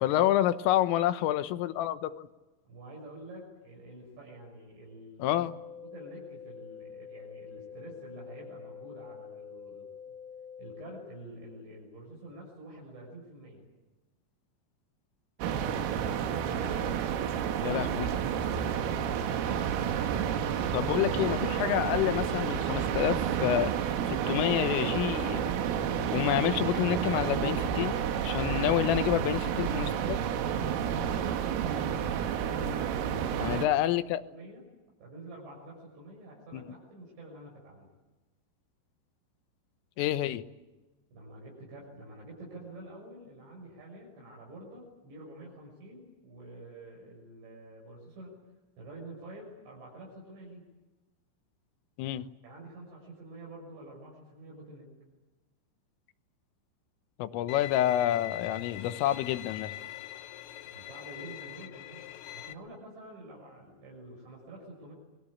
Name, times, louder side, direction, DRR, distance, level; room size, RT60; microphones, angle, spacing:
voice 1, 0.0-2.3 5.2-5.6 17.6-18.1 20.7-23.7 24.1-25.5 26.1-28.0 28.2-30.2 33.4-34.2 36.5-36.6 40.0-40.4 52.0-52.3 57.2-59.8, left 13 dB, 90° left, 11 dB, 3.7 m, -28 dB
voice 2, 2.7-5.4 5.8-9.9 10.6-13.7 19.1-19.4 32.3-33.6 34.3-34.6 35.0-37.9 41.1-48.3 48.8-50.6 52.4-54.9 60.7-62.0 62.3-64.9, right 1 dB, 65° right, -2 dB, 8.6 m, -48 dB
sound 1, 5.2-11.2, left 7 dB, 20° left, 1.6 m, -46 dB
sound 2, 15.4-33.7, right 8 dB, 90° right, 4.3 m, -30 dB
Bowed string instrument, 57.5-62.5, left 14 dB, 75° left, 3.3 m, -43 dB
27.0 x 22.0 x 8.7 m, 1.1 s
omnidirectional pair, 5.7 m